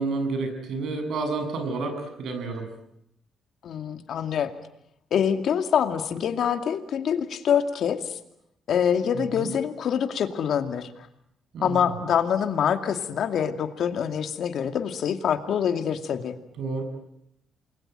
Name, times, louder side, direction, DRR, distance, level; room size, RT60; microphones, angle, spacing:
voice 1, 0.0-2.7 9.1-9.5 11.5-11.8 16.6-16.8, right 3 dB, 70° right, 7 dB, 7.4 m, -30 dB
voice 2, 3.6-4.5 5.1-8.2 8.7-10.9 11.6-16.4, left 8 dB, 65° left, 8 dB, 2.5 m, -25 dB
29.0 x 22.0 x 9.2 m, 0.78 s
cardioid pair, 90°, 0 cm